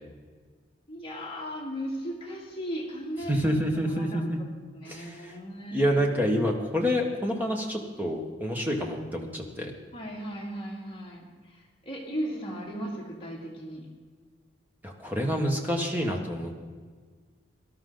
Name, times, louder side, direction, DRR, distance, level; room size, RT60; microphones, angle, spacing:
voice 1, 0.9-3.4 3.9-5.9 9.9-13.9, equal, 30° left, -3 dB, 2.4 m, -37 dB
voice 2, 3.3-4.4 4.8-5.4 5.7-9.7 14.8-16.5, equal, 10° right, 1 dB, 1.5 m, -28 dB
18.0 x 12.5 x 3.9 m, 1.5 s
head